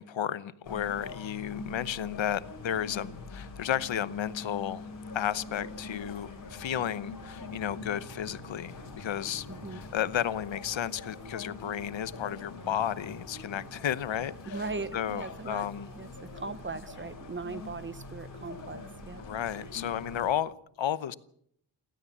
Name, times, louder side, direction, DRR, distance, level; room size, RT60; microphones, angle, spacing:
voice 1, 0.0-4.9 5.1-9.5 9.7-14.6 14.9-15.9 19.2-21.1, left 10 dB, 80° left, 16 dB, 1.0 m, -33 dB
sound 1, 0.6-20.3, left 3 dB, 45° left, 5.2 m, -44 dB
voice 2, 9.5-9.8 14.5-15.7 16.0-19.2, right 3 dB, 25° right, 14 dB, 1.0 m, -39 dB
28.5 x 13.0 x 7.3 m, 0.68 s
wide cardioid pair, 130°, 45 cm